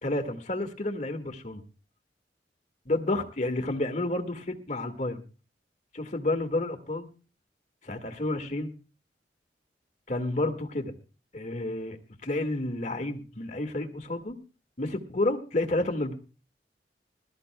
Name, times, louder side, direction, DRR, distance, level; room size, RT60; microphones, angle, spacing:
voice 1, 0.0-1.6 2.9-5.2 5.9-7.1 7.8-8.7 10.1-10.9 11.3-14.4 14.8-16.1, left 2 dB, 45° left, 7 dB, 1.8 m, -30 dB
22.0 x 13.5 x 2.2 m, 0.34 s
head